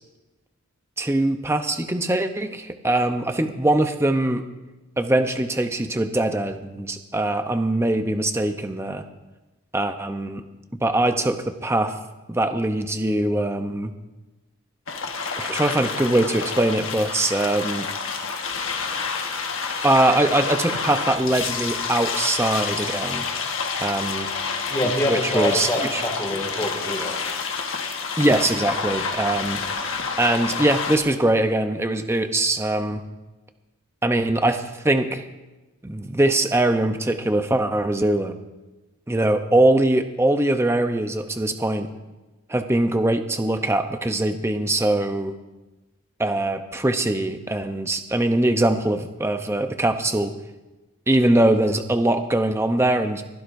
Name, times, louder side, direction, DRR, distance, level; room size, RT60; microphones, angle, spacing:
voice 1, 1.0-4.4 5.0-9.0 9.7-10.4 10.8-11.9 12.3-13.9 15.4-17.9 19.8-23.3 23.8-24.3 25.1-26.0 28.2-29.6 30.2-33.0 34.0-35.2 35.8-38.4 39.1-41.9 42.5-45.3 46.2-50.3 51.1-53.2, right 1 dB, 10° right, 7 dB, 0.7 m, -22 dB
sound 1, 14.9-31.0, left 5 dB, 60° left, 1.4 m, -28 dB
voice 2, 24.7-27.2, left 1 dB, 15° left, 1 dB, 2.1 m, -25 dB
22.0 x 15.5 x 2.7 m, 1.1 s
head